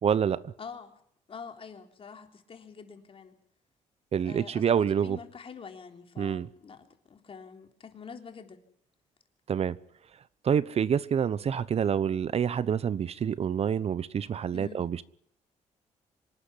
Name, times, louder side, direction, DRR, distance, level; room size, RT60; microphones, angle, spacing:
voice 1, 0.0-0.5 4.1-5.2 6.2-6.5 9.5-9.8 10.4-15.0, right 8 dB, 50° right, 0.9 m, -27 dB
voice 2, 0.6-1.0 1.3-3.4 4.2-8.6 14.5-14.9, left 6 dB, 45° left, 3.6 m, -46 dB
26.0 x 12.0 x 10.0 m
cardioid pair, 90°, 13 cm